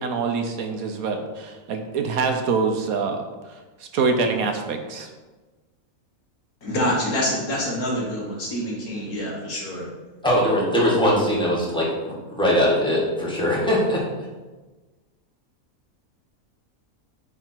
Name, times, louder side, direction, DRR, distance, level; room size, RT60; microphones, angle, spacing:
voice 1, 0.0-3.2 3.5-5.1, right 4 dB, 75° right, 5 dB, 1.2 m, -25 dB
voice 2, 6.6-9.9, equal, 80° left, -3 dB, 2.2 m, -26 dB
voice 3, 10.2-14.0, equal, 5° left, -6 dB, 1.8 m, -21 dB
9.7 x 3.6 x 4.5 m, 1.2 s
omnidirectional pair, 1.5 m